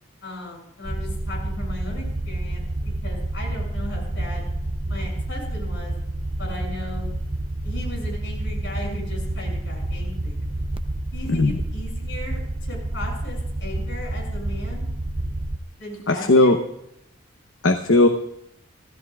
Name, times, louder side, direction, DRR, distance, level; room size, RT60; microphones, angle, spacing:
voice 1, 0.2-4.5 4.9-5.9 6.4-7.1 7.6-10.4 11.1-12.4 12.7-14.9 15.8-16.5, left 1 dB, 65° left, 0 dB, 7.2 m, -37 dB
sound 1, 0.8-15.6, right 1 dB, 25° right, 0.7 m, -29 dB
voice 2, 11.3-11.6 16.1-16.6 17.6-18.1, left 2 dB, 80° left, 6 dB, 1.0 m, -17 dB
26.5 x 16.0 x 2.5 m, 0.78 s
head